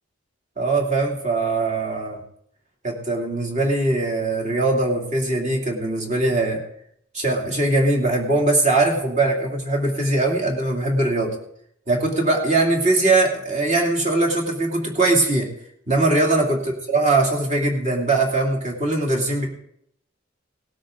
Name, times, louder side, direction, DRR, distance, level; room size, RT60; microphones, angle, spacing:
voice 1, 0.6-2.2 2.8-6.6 7.1-11.3 11.9-15.5 15.9-16.6 16.9-19.5, right 2 dB, 35° right, -1 dB, 2.7 m, -21 dB
18.0 x 12.5 x 3.8 m, 0.70 s
head